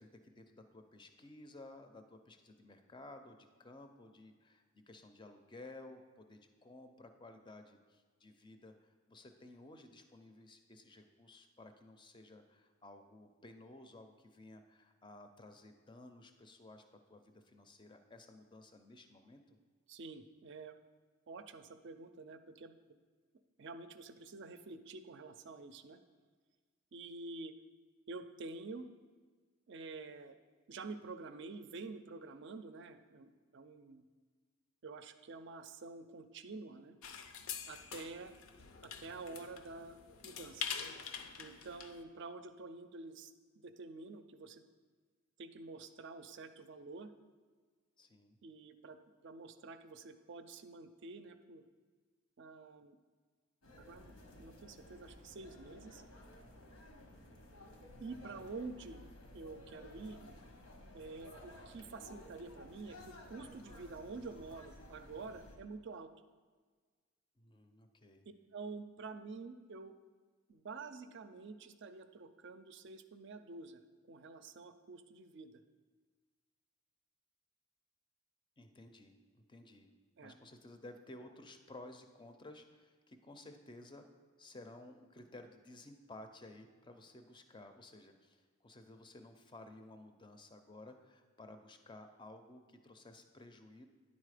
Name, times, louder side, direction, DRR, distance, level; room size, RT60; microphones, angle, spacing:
voice 1, 0.0-19.6 48.0-48.4 67.4-68.2 78.6-79.9 80.2-84.0 84.4-93.9, left 2 dB, 20° left, 7 dB, 0.5 m, -55 dB
voice 2, 19.9-20.7 21.3-23.0 23.6-26.0 26.9-27.5 28.1-28.9 29.7-30.4 30.7-34.0 34.8-37.0 37.7-38.3 38.8-40.6 41.4-43.3 43.6-44.7 45.4-47.1 48.4-49.0 49.2-51.6 52.4-53.0 53.8-54.1 54.4-56.0 58.0-59.1 59.3-60.2 60.9-66.1 68.5-69.9 70.5-73.8 74.1-75.6 80.2-80.4, right 3 dB, 55° right, 9 dB, 0.4 m, -48 dB
sound 1, 37.0-42.0, left 7 dB, 75° left, 0.6 m, -45 dB
sound 2, 53.6-65.6, left 1 dB, 90° left, 1.2 m, -55 dB
9.7 x 4.1 x 4.9 m, 1.5 s
head